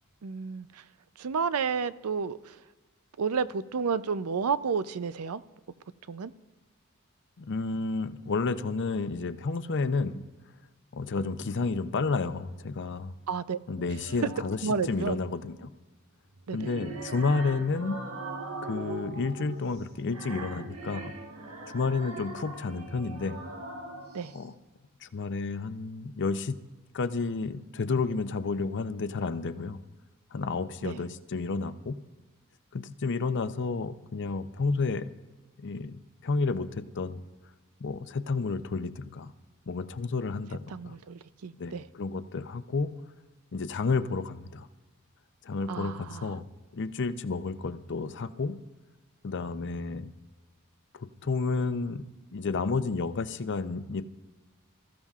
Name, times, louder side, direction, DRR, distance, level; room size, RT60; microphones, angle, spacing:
voice 1, 0.2-0.8 1.2-2.6 3.2-5.4 6.1-6.3 13.3-13.6 14.2-14.3 14.6-15.2 16.5-16.7 24.1-24.3 30.8-31.0 40.7-41.8 45.7-46.3, right 5 dB, 90° right, 0.5 m, -31 dB
voice 2, 7.4-10.2 10.9-13.1 13.7-14.6 14.9-15.7 16.5-18.0 18.6-21.1 21.7-23.4 24.3-24.5 25.0-26.6 26.9-29.8 30.3-32.0 32.7-35.1 35.6-37.2 37.8-39.3 39.7-41.0 41.6-43.0 43.5-44.7 45.4-46.5 46.7-48.6 49.2-50.1 50.9-52.0 52.3-54.0, left 4 dB, 55° left, 0.6 m, -31 dB
sound 1, 13.8-14.7 16.3-24.4, right 2 dB, 75° right, 1.4 m, -41 dB
25.5 x 14.5 x 2.4 m
head